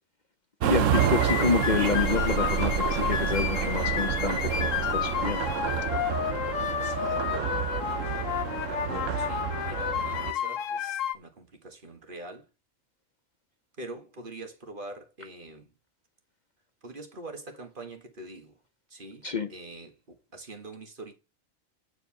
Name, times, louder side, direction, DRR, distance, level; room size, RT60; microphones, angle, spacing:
voice 1, 0.6-5.4 19.2-19.5, left 5 dB, 45° left, 0.6 m, -28 dB
sound 1, 0.6-10.3, right 9 dB, 70° right, 1.1 m, -29 dB
sound 2, 0.9-11.1, left 9 dB, 70° left, 1.1 m, -31 dB
sound 3, 1.7-6.4, right 3 dB, 85° right, 1.6 m, -36 dB
voice 2, 6.8-7.6 8.7-12.5 13.8-15.7 16.8-18.6 18.9-21.1, right 2 dB, 40° right, 1.8 m, -44 dB
9.3 x 4.8 x 5.9 m
omnidirectional pair, 1.4 m